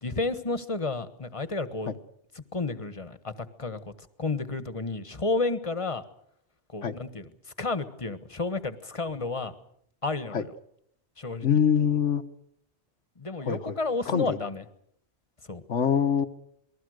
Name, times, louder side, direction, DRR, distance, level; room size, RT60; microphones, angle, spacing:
voice 1, 0.0-1.9 2.3-3.9 4.2-6.0 6.7-7.3 7.6-9.5 10.0-10.5 11.2-11.5 13.2-14.6 15.5-15.6, left 3 dB, 30° left, 12 dB, 1.5 m, -31 dB
voice 2, 11.4-12.2 13.4-13.7 14.0-14.4 15.7-16.3, left 8 dB, 85° left, 8 dB, 1.6 m, -24 dB
27.5 x 20.5 x 6.6 m, 0.71 s
omnidirectional pair, 1.2 m